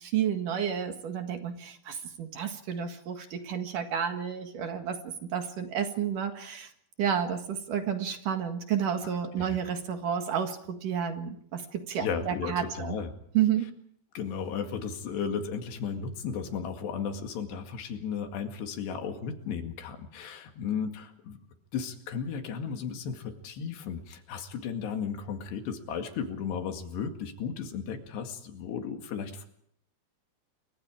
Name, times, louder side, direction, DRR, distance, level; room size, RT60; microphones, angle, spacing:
voice 1, 0.0-6.7 7.0-12.9 13.3-13.7, right 8 dB, 60° right, 6 dB, 3.1 m, -31 dB
voice 2, 12.0-13.1 14.2-21.4 21.7-29.5, left 6 dB, 85° left, 5 dB, 4.2 m, -35 dB
29.0 x 24.0 x 4.9 m, 0.68 s
omnidirectional pair, 4.7 m